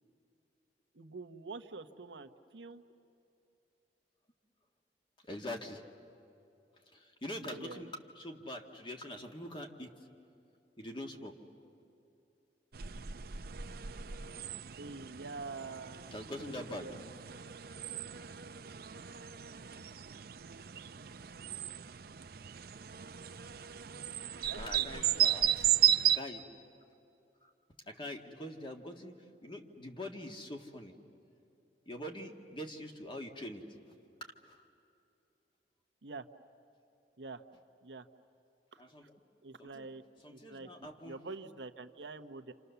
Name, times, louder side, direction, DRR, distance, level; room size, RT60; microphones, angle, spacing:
voice 1, 0.9-2.8 7.3-7.9 14.8-16.1 16.4-17.1 24.5-25.6 36.0-36.3 37.2-37.4 37.8-38.1 38.7-38.8 39.4-40.0 40.3-42.5, right 3 dB, 90° right, 8 dB, 1.0 m, -46 dB
voice 2, 5.3-5.8 6.9-7.9 8.2-9.9 10.8-11.3 16.1-16.9 24.5-25.6 26.1-26.4 27.9-29.1 29.4-30.9 31.9-33.6 34.5-34.6 38.8-39.2 39.6-39.9 40.2-41.2, left 1 dB, 30° left, 3 dB, 1.7 m, -43 dB
sound 1, 12.7-26.2, right 11 dB, 60° right, 0.6 m, -35 dB
27.5 x 27.5 x 6.9 m, 2.7 s
head